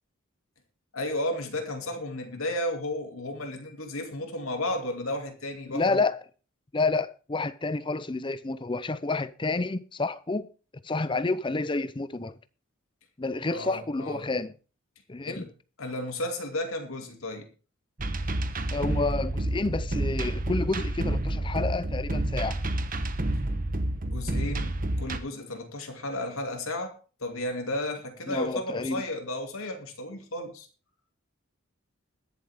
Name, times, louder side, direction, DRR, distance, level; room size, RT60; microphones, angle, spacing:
voice 1, 0.9-6.0 13.5-14.2 15.3-15.5 15.8-17.5 24.0-30.7, left 1 dB, 90° left, 2.5 m, -33 dB
voice 2, 5.7-6.2 6.7-10.5 10.8-12.4 13.2-14.5 15.1-15.4 18.7-22.6 28.3-29.0, left 3 dB, 25° left, 0.6 m, -29 dB
sound 1, 18.0-25.2, right 1 dB, 40° right, 1.1 m, -29 dB
21.5 x 7.3 x 3.6 m
head